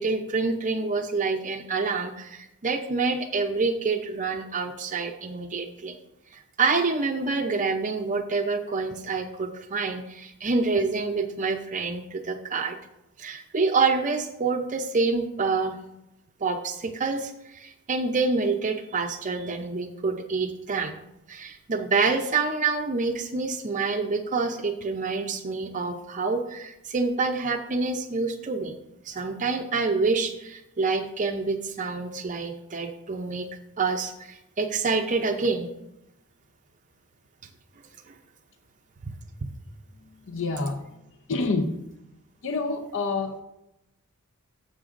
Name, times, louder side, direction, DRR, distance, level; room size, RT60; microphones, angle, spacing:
voice 1, 0.0-6.0 6.3-12.8 13.2-15.7 16.4-21.0 21.3-28.7 29.1-33.5 33.8-35.7 38.1-38.2, right 4 dB, 35° right, 5 dB, 0.5 m, -27 dB
voice 2, 40.0-40.8 41.3-41.7 42.4-43.4, left 3 dB, 55° left, 7 dB, 0.6 m, -28 dB
11.0 x 7.7 x 2.5 m, 0.88 s
head